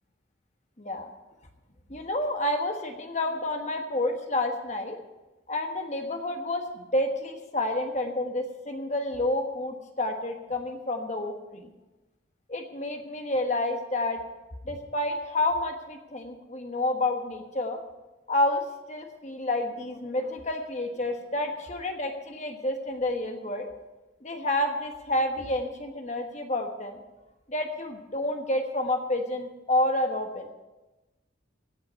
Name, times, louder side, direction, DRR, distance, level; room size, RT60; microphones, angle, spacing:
voice 1, 0.8-1.1 1.9-5.0 5.5-11.7 12.5-14.2 14.7-17.8 18.3-18.6 18.9-23.7 24.2-27.0 27.5-30.5, left 1 dB, 35° left, 4 dB, 1.3 m, -29 dB
16.5 x 5.8 x 9.5 m, 1.1 s
head